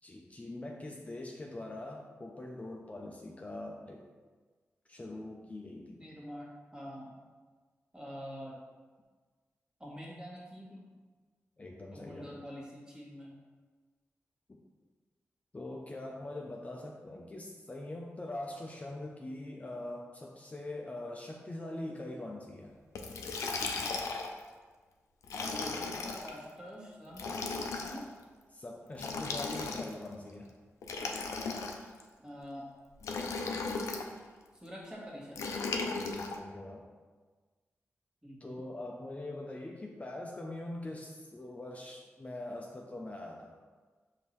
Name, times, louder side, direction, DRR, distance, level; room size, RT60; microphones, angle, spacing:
voice 1, 0.0-4.0 4.9-6.1 11.6-12.4 14.5-14.6 15.5-22.8 28.5-30.5 35.9-36.8 38.4-43.5, left 1 dB, 30° left, 0 dB, 0.4 m, -43 dB
voice 2, 5.9-7.2 7.9-8.5 9.8-10.8 11.9-13.4 25.4-28.0 32.2-32.7 34.6-35.5 38.2-38.6, equal, 15° right, -5 dB, 1.3 m, -46 dB
Liquid, 23.0-24.4 25.2-26.3 27.1-28.0 28.9-30.1 30.8-32.0 33.0-34.1 35.4-36.4, left 4 dB, 90° left, 0.4 m, -36 dB
5.1 x 2.8 x 3.0 m, 1.4 s
cardioid pair, 50°, 5 cm